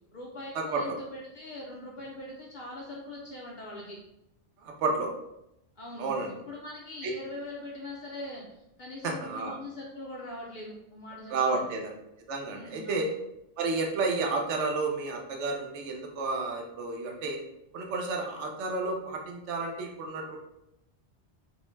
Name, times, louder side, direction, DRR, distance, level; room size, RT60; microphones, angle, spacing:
voice 1, 0.1-4.0 5.8-11.7 12.5-13.1, left 1 dB, 60° left, -3 dB, 0.5 m, -42 dB
voice 2, 4.6-5.1 6.0-6.4 7.0-7.1 9.0-9.5 11.3-11.9 12.3-13.0 13.6-17.4 17.7-20.4, right 3 dB, 85° right, 1 dB, 0.9 m, -31 dB
2.6 x 2.0 x 3.0 m, 0.85 s
omnidirectional pair, 1.2 m